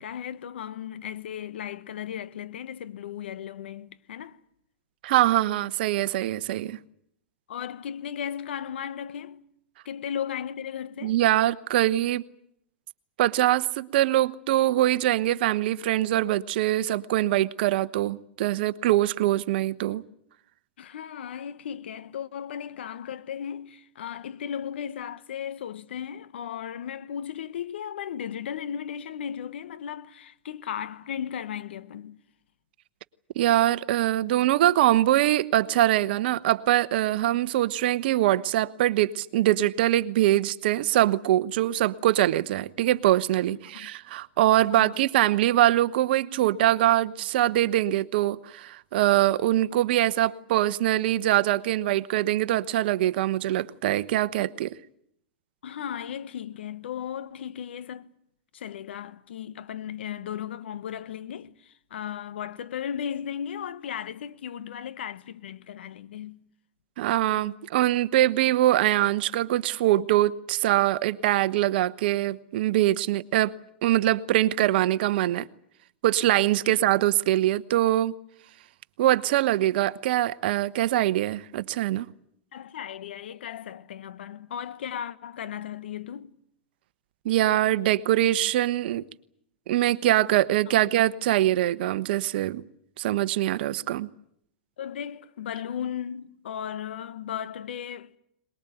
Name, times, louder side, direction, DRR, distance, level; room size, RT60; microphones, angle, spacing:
voice 1, 0.0-4.4 7.5-9.5 9.8-11.2 20.8-32.2 43.7-43.9 44.7-45.0 55.6-58.1 58.5-66.4 76.7-76.8 82.5-86.4 90.7-90.8 94.8-98.2, left 9 dB, 75° left, 1.2 m, -36 dB
voice 2, 5.0-6.8 11.0-12.2 13.2-20.0 33.4-54.7 67.0-73.5 73.8-75.5 76.0-78.1 79.0-82.1 87.2-89.0 89.7-92.6 93.0-94.1, right 14 dB, 65° right, 1.1 m, -23 dB
22.5 x 21.0 x 9.2 m
hypercardioid pair, 110°, 6 cm